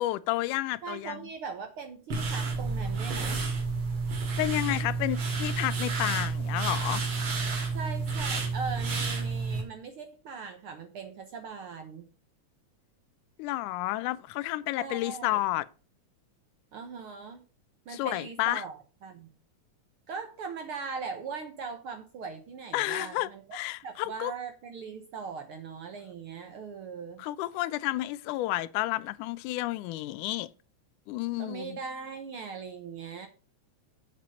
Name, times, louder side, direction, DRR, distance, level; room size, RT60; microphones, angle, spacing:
voice 1, 0.0-1.2 4.4-7.0 13.4-15.7 17.9-18.6 22.7-24.3 27.2-30.5 31.1-31.8, left 16 dB, 85° left, 2.1 m, -31 dB
voice 2, 0.8-3.4 7.7-12.1 14.8-15.4 16.7-17.4 17.9-19.3 20.1-23.4 23.8-27.2 31.4-33.3, right 5 dB, 65° right, 1.4 m, -40 dB
sound 1, 2.1-9.6, right 4 dB, 50° right, 3.0 m, -30 dB
7.6 x 7.3 x 5.1 m
omnidirectional pair, 3.5 m